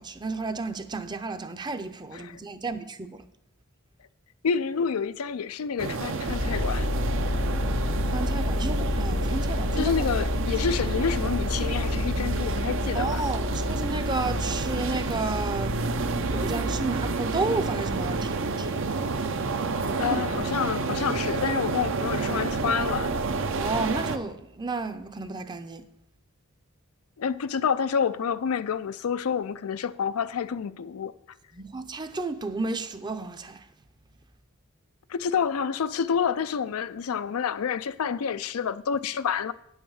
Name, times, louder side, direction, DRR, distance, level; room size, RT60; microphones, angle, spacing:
voice 1, 0.0-3.3 8.1-9.9 12.9-15.8 16.2-18.9 19.8-20.2 23.6-25.8 31.5-33.6, right 3 dB, 20° right, 0.6 m, -32 dB
voice 2, 4.4-6.9 9.8-13.2 20.0-23.1 27.2-31.1 35.1-39.5, left 6 dB, 85° left, 0.5 m, -28 dB
sound 1, 5.8-24.2, right 3 dB, 60° right, 0.7 m, -30 dB
sound 2, 6.2-18.9, left 2 dB, 40° left, 0.6 m, -30 dB
9.6 x 5.6 x 7.3 m
head